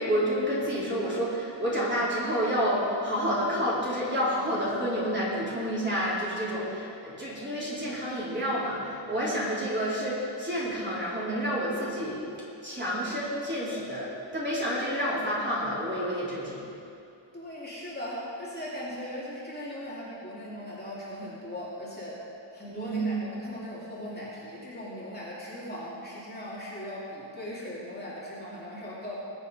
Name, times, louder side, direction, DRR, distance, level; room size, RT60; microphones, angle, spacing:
voice 1, 0.0-12.2 12.6-16.6 22.7-23.3, equal, 25° right, -8 dB, 4.0 m, -29 dB
voice 2, 17.3-22.2 22.5-29.2, equal, 20° left, -8 dB, 2.8 m, -39 dB
20.5 x 8.4 x 5.0 m, 2.7 s
wide cardioid pair, 140°, 45 cm